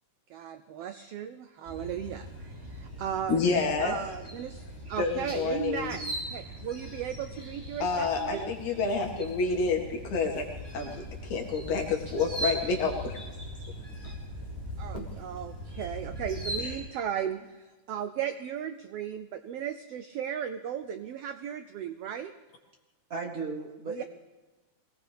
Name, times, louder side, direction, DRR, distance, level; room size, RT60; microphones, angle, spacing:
voice 1, 0.3-3.5 3.8-8.5 14.8-22.3 23.9-24.0, right 9 dB, 85° right, 9 dB, 1.3 m, -36 dB
sound 1, 1.6-16.8, right 1 dB, 20° right, 6.0 m, -40 dB
voice 2, 3.3-4.0 5.0-6.0 7.8-10.4 10.7-13.2 14.0-14.1 14.9-15.0 16.6-16.8, left 4 dB, 70° left, 1 dB, 3.4 m, -29 dB
voice 3, 23.1-24.0, right 4 dB, 65° right, 1 dB, 0.8 m, -35 dB
22.5 x 18.5 x 3.5 m, 1.2 s
omnidirectional pair, 3.5 m